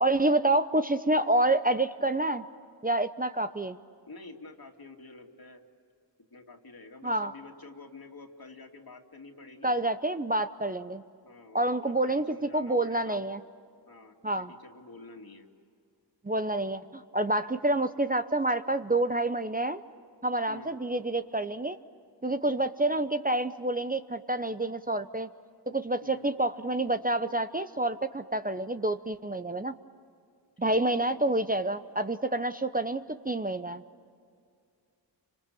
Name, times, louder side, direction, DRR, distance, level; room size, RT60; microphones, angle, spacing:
voice 1, 0.0-2.4 2.8-3.8 7.0-7.3 9.6-11.0 11.5-13.4 14.2-14.5 16.2-19.8 20.2-21.8 22.2-25.3 25.7-29.7 30.6-33.8, right 2 dB, 20° right, 9 dB, 0.8 m, -28 dB
voice 2, 4.0-5.6 6.3-9.7 11.2-13.2 13.9-15.5 20.5-20.7 26.0-26.3 30.6-31.4, left 3 dB, 55° left, 3 dB, 2.8 m, -49 dB
30.0 x 26.0 x 7.0 m, 2.3 s
cardioid pair, 55°, 43 cm